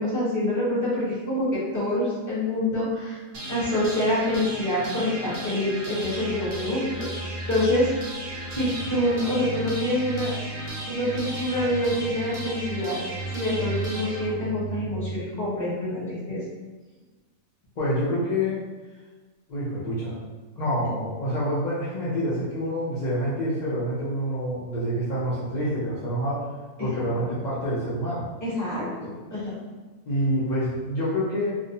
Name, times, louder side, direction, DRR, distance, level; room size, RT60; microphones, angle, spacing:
voice 1, 0.0-3.2 3.5-7.9 8.5-10.3 10.9-13.0 13.3-16.4 26.8-26.9 28.4-29.5, left 1 dB, 15° left, -9 dB, 0.7 m, -26 dB
sound 1, 3.3-15.3, right 2 dB, 75° right, 1.1 m, -34 dB
voice 2, 17.8-18.6 19.5-20.2 20.6-26.5 26.8-28.3 30.1-31.6, equal, 60° left, -11 dB, 0.4 m, -27 dB
2.5 x 2.0 x 2.7 m, 1.3 s
omnidirectional pair, 1.5 m